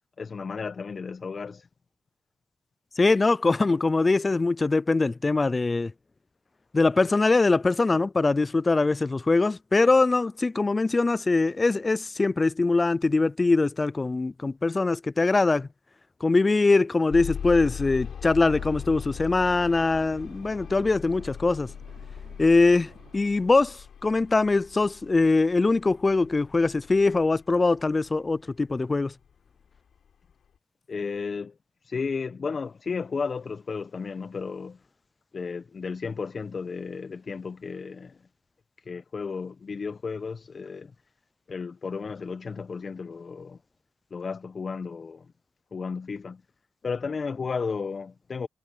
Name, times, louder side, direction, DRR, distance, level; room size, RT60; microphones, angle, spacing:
voice 1, 0.2-1.7 30.9-31.5 31.8-34.8 35.3-38.2 38.8-40.9 41.5-43.6 44.1-45.3 45.7-46.4 46.8-48.5, left 5 dB, 50° left, 1.1 m, -33 dB
voice 2, 3.0-5.9 6.7-15.7 16.2-21.7 22.4-29.1, left 3 dB, 35° left, 0.5 m, -22 dB
sound 1, 17.1-29.0 29.7-29.8 30.3-30.4, left 7 dB, 70° left, 4.6 m, -40 dB
Drum, 18.5-23.5, right 10 dB, 80° right, 3.4 m, -53 dB
supercardioid pair, 45°, 0 cm